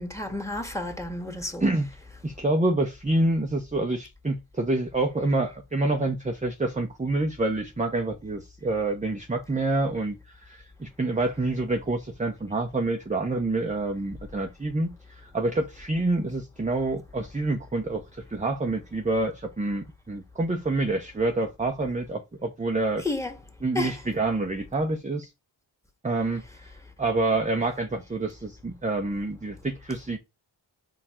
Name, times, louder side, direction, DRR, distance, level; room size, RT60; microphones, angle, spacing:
voice 1, 0.0-1.7 23.0-23.3 23.7-23.9, left 2 dB, 5° left, 1.7 m, -31 dB
voice 2, 2.2-23.0 23.6-25.3 26.0-30.2, right 2 dB, 15° right, 0.8 m, -27 dB
5.1 x 4.4 x 4.4 m
cardioid pair, 65°, 47 cm